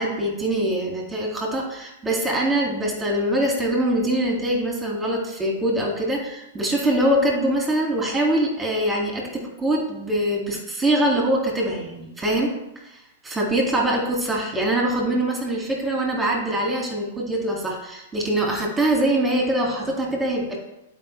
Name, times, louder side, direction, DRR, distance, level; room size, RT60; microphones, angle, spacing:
voice 1, 0.0-12.5 12.8-20.6, right 1 dB, 10° right, -1 dB, 2.0 m, -23 dB
10.5 x 4.9 x 3.1 m, 0.91 s
hypercardioid pair, 105°, 0 cm